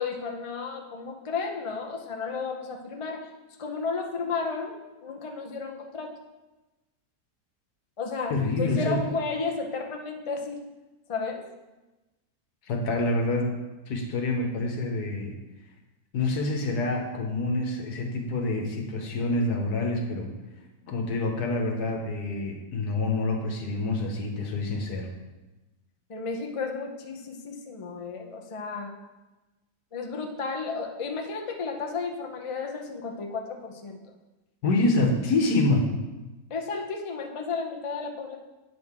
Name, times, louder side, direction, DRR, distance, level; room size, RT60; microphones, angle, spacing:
voice 1, 0.0-3.3 3.6-4.7 5.0-6.2 8.0-10.6 11.1-11.4 26.1-28.9 29.9-34.1 36.5-38.4, left 4 dB, 45° left, 2 dB, 0.4 m, -33 dB
voice 2, 8.3-9.0 12.7-13.5 13.9-15.3 16.1-20.3 20.9-25.1 34.6-35.9, left 2 dB, 70° left, 2 dB, 1.6 m, -27 dB
8.9 x 6.3 x 3.6 m, 1.1 s
omnidirectional pair, 1.8 m